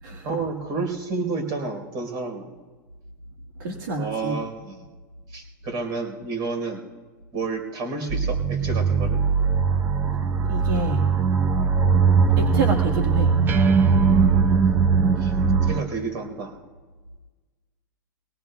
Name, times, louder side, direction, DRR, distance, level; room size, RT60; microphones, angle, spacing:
voice 1, 0.2-2.5 4.0-4.8 5.3-6.8 7.3-9.2 15.2-15.3 15.6-16.5, right 4 dB, 40° right, 4 dB, 4.3 m, -30 dB
voice 2, 3.6-4.4 10.1-10.2 10.5-11.0 12.4-13.4, right 3 dB, 75° right, 1 dB, 1.7 m, -28 dB
sound 1, 8.1-15.8, right 5 dB, 20° right, 0.7 m, -20 dB
23.5 x 18.0 x 2.3 m, 1.4 s
supercardioid pair, 135°, 11 cm